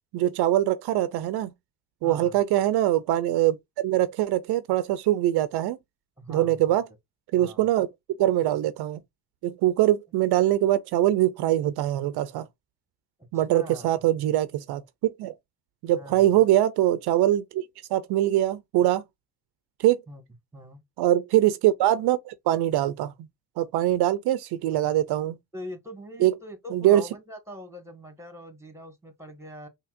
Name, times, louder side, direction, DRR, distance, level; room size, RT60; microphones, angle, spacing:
voice 1, 0.1-1.5 2.0-3.6 3.8-5.8 6.3-6.9 7.3-7.9 8.2-9.0 9.4-12.5 13.3-15.3 15.8-17.6 17.9-19.0 19.8-20.0 21.0-23.1 23.6-25.4 26.2-26.3 26.7-27.0, right 13 dB, 75° right, 0.5 m, -23 dB
voice 2, 2.0-2.4 6.2-6.6 7.4-7.7 13.5-14.0 15.9-16.4 20.1-20.2 20.5-20.8 24.7-24.8 25.5-29.7, equal, 5° right, 1.7 m, -42 dB
5.6 x 2.9 x 2.5 m
supercardioid pair, 75°, 39 cm